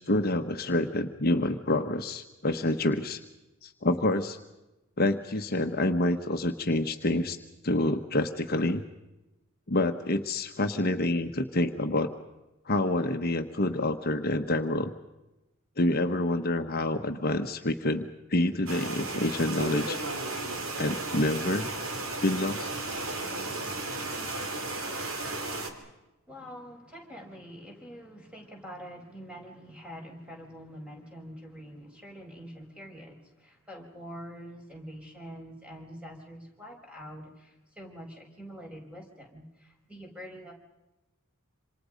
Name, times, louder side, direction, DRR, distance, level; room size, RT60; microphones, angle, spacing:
voice 1, 0.0-3.2 3.6-4.4 5.0-7.4 7.6-8.8 9.7-12.1 12.6-14.9 15.8-18.0 18.3-20.0 20.8-21.7 22.2-22.7, left 2 dB, 45° left, 5 dB, 1.2 m, -27 dB
sound 1, 18.7-25.7, right 2 dB, 70° right, 3.2 m, -34 dB
voice 2, 26.3-40.5, equal, 5° right, 0 dB, 5.6 m, -45 dB
27.5 x 26.5 x 5.2 m, 1.0 s
head